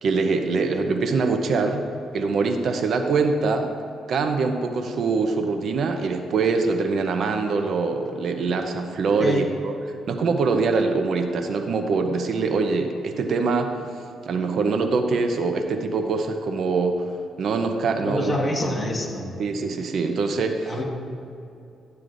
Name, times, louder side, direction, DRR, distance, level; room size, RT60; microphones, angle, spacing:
voice 1, 0.0-1.9 2.1-3.7 4.1-9.7 10.1-13.7 14.3-17.0 17.4-18.4 19.4-20.8, right 4 dB, 60° right, 5 dB, 0.7 m, -23 dB
voice 2, 18.0-19.4 20.6-20.8, equal, 20° left, 0 dB, 1.5 m, -26 dB
12.0 x 9.5 x 2.6 m, 2.7 s
cardioid pair, 90°, 0 cm